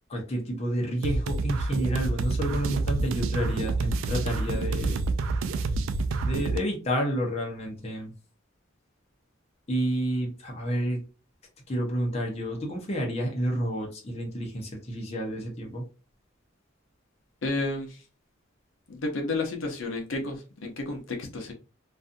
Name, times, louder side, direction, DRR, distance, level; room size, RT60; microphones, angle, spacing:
voice 1, 0.1-5.0 6.3-8.1 9.7-11.0 11.7-15.8, equal, 30° left, 0.7 m, -30 dB
sound 1, 1.0-6.6, right 3 dB, 85° right, 0.3 m, -28 dB
voice 2, 17.4-18.0 18.9-21.5, left 2 dB, 75° left, 0.7 m, -31 dB
2.5 x 2.4 x 2.5 m
head